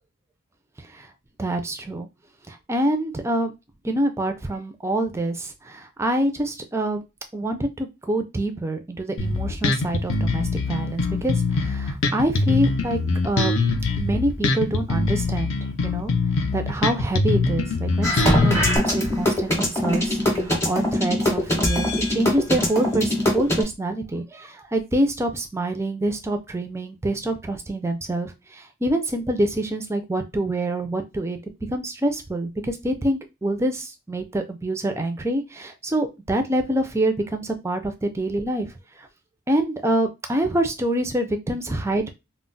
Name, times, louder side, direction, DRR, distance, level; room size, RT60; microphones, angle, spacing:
voice 1, 1.4-2.1 2.5-3.5 3.8-7.0 7.3-13.0 13.2-13.5 14.0-15.6 15.8-16.1 16.5-31.4 31.7-38.7 39.5-42.2, right 1 dB, 15° right, 6 dB, 0.3 m, -26 dB
Bass guitar, 9.2-18.8, left 3 dB, 60° left, 0.5 m, -23 dB
sound 1, 18.0-23.6, left 1 dB, 10° left, 0.7 m, -21 dB
2.3 x 2.0 x 3.8 m, 0.24 s
head